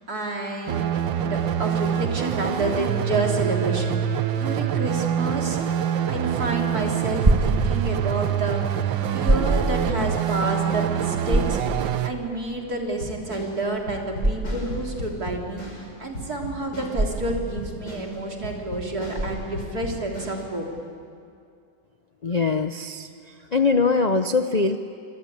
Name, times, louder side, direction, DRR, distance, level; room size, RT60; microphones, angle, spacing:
voice 1, 0.0-5.6 6.1-11.6 12.0-20.7, right 2 dB, 55° right, 0 dB, 3.8 m, -29 dB
sound 1, 0.7-12.1, right 9 dB, 80° right, 1.7 m, -25 dB
sound 2, 6.8-19.8, right 1 dB, 20° right, 2.5 m, -26 dB
sound 3, 13.0-20.4, left 1 dB, 90° left, 5.7 m, -36 dB
voice 2, 22.2-23.1 23.5-24.8, left 4 dB, 55° left, 8 dB, 0.4 m, -22 dB
27.0 x 24.5 x 8.8 m, 2.4 s
omnidirectional pair, 2.0 m